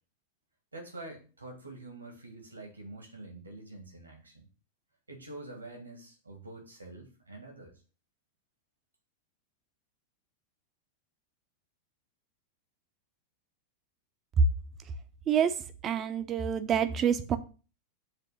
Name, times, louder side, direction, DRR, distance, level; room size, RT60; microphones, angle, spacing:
voice 1, 0.7-4.5 5.1-7.7, right 2 dB, 80° right, 3 dB, 2.3 m, -46 dB
voice 2, 15.8-17.4, right 7 dB, 30° right, 10 dB, 0.8 m, -26 dB
7.6 x 3.7 x 6.5 m, 0.36 s
figure-of-eight pair, 90°, 0 cm